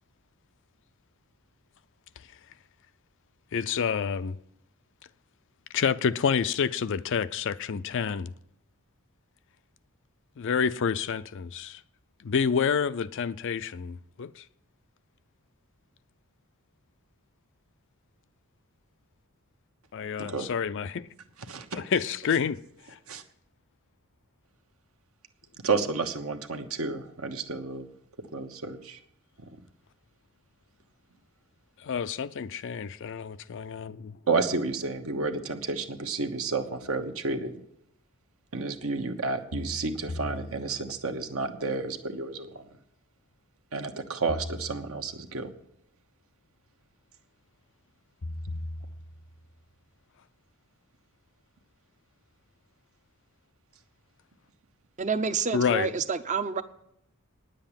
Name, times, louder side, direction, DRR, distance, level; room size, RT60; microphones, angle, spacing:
voice 1, 3.5-4.4 5.7-8.3 10.4-11.8 12.2-14.3 19.9-21.0 21.7-22.6 31.9-34.1 55.5-55.9, left 6 dB, 55° left, 0.4 m, -28 dB
voice 2, 21.5-21.8 23.1-23.2 25.6-27.9 28.3-29.0 34.3-37.5 38.5-42.6 43.7-45.5, right 3 dB, 65° right, 1.1 m, -31 dB
sound 1, 36.9-37.0 39.5-41.1 44.3-45.4 48.2-49.5, left 1 dB, 80° left, 0.9 m, -39 dB
voice 3, 55.0-56.6, right 5 dB, 35° right, 0.6 m, -28 dB
9.9 x 7.7 x 8.8 m
head